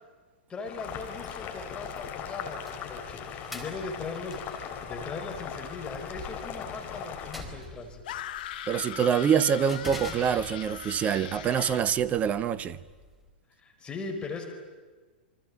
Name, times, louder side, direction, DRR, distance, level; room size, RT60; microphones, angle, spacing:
voice 1, 0.5-8.2 13.6-14.5, left 3 dB, 15° left, 4.6 m, -39 dB
Boiling, 0.6-7.4, left 8 dB, 30° left, 3.5 m, -39 dB
sound 1, 0.9-13.3, left 1 dB, ahead, 4.5 m, -48 dB
sound 2, 8.1-11.9, left 12 dB, 55° left, 1.7 m, -39 dB
voice 2, 8.7-12.8, right 8 dB, 25° right, 1.0 m, -25 dB
28.0 x 25.0 x 8.5 m
figure-of-eight pair, 105°, 6 cm